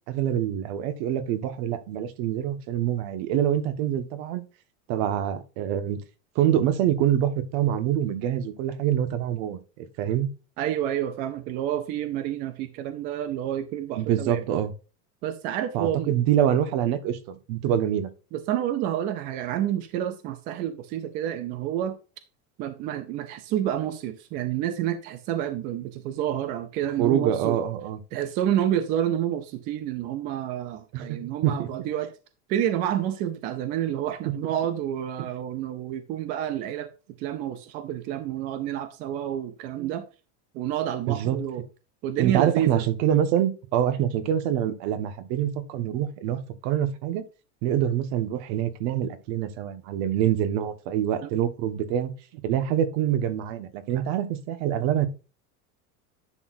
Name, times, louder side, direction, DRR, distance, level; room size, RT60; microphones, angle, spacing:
voice 1, 0.1-4.4 4.9-6.0 6.3-10.3 14.0-14.7 15.7-18.1 27.0-28.0 30.9-31.7 34.2-34.4 39.8-39.9 41.1-41.4 42.2-47.2 47.6-55.1, right 10 dB, 50° right, 1.5 m, -25 dB
voice 2, 10.6-14.4 15.2-16.1 18.3-22.0 22.6-27.6 28.1-32.1 32.5-36.9 37.2-40.0 40.5-41.6 42.0-42.8 51.2-51.4, right 11 dB, 20° right, 0.3 m, -29 dB
10.5 x 6.3 x 2.6 m
supercardioid pair, 160°, 43 cm